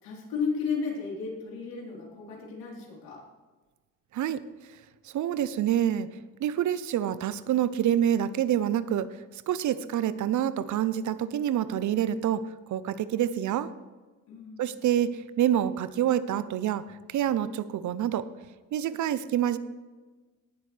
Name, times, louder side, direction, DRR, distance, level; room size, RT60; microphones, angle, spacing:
voice 1, 0.0-3.2 14.3-14.7, left 5 dB, 80° left, -3 dB, 3.9 m, -33 dB
voice 2, 5.0-6.1 6.4-13.7 14.6-18.3 18.7-19.6, right 10 dB, 55° right, 15 dB, 0.7 m, -27 dB
18.5 x 7.6 x 3.4 m, 1.3 s
cardioid pair, 100°, 35 cm